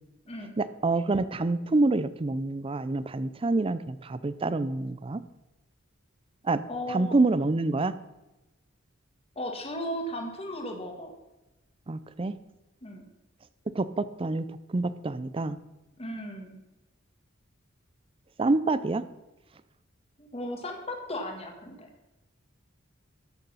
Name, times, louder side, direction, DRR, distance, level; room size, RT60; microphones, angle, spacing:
voice 1, 0.6-5.2 6.4-6.6 6.9-7.9 11.9-12.4 13.7-15.6 18.4-19.0, right 2 dB, 25° right, 15 dB, 0.5 m, -27 dB
voice 2, 6.7-7.2 9.3-11.1 12.8-13.1 16.0-16.6 20.2-21.9, equal, 30° left, 3 dB, 1.7 m, -36 dB
13.0 x 6.7 x 5.6 m, 1.0 s
head